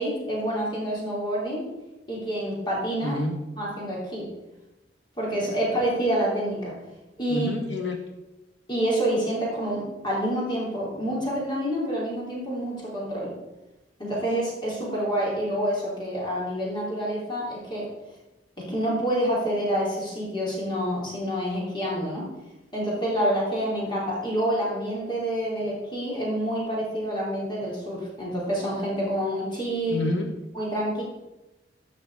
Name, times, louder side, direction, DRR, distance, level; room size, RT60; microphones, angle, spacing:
voice 1, 0.0-1.7 2.1-3.2 3.6-4.3 5.2-6.7 7.2-7.5 8.7-13.3 14.0-17.9 18.6-22.3 22.7-30.0 30.5-31.0, right 1 dB, 25° left, -4 dB, 3.3 m, -27 dB
voice 2, 3.0-3.4 7.3-8.0 29.9-30.3, left 2 dB, 85° left, 2 dB, 1.8 m, -28 dB
14.5 x 5.2 x 4.8 m, 1.0 s
head